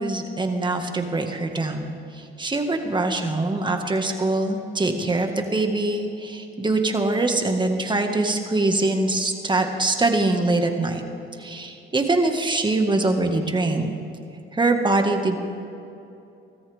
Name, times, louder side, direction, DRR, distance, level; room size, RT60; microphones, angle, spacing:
voice 1, 0.0-11.0 11.4-13.9 14.5-15.4, right 2 dB, 25° right, 4 dB, 1.8 m, -23 dB
23.5 x 14.0 x 3.6 m, 2.8 s
cardioid pair, 90°, 20 cm